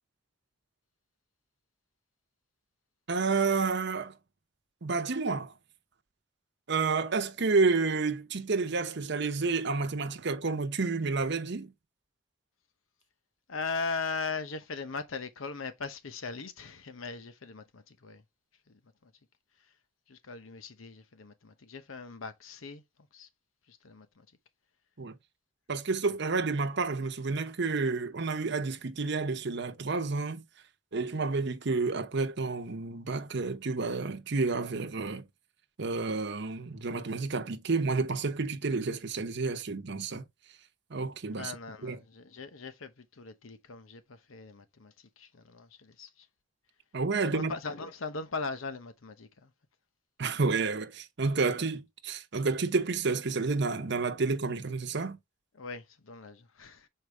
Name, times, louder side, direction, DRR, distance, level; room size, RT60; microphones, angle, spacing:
voice 1, 3.1-4.2 4.8-5.5 6.7-11.7 25.0-25.1 25.7-30.4 30.9-35.3 35.8-40.2 40.9-41.5 41.8-42.0 46.9-47.5 50.2-55.2, right 4 dB, 60° right, 0.8 m, -30 dB
voice 2, 13.5-18.2 18.7-19.1 20.1-22.8 23.1-23.3 23.7-24.3 41.3-46.3 47.2-49.5 55.5-56.9, left 4 dB, 90° left, 0.8 m, -39 dB
6.6 x 4.6 x 3.4 m
head